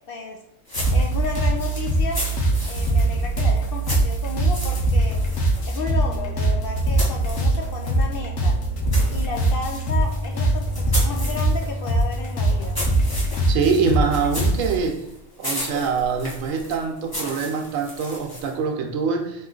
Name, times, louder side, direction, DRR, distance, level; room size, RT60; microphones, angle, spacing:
voice 1, 0.1-0.4 0.9-2.2 2.6-5.2 5.7-8.6 9.1-12.8, left 4 dB, 60° left, 0.6 m, -33 dB
sound 1, 0.7-14.8, right 2 dB, 85° left, 1.3 m, -22 dB
sound 2, 0.7-8.1 8.4-18.6, left 1 dB, 20° left, 1.0 m, -35 dB
voice 2, 13.5-15.0 15.4-19.5, right 5 dB, 85° right, 1.0 m, -24 dB
3.8 x 3.0 x 3.8 m
omnidirectional pair, 1.3 m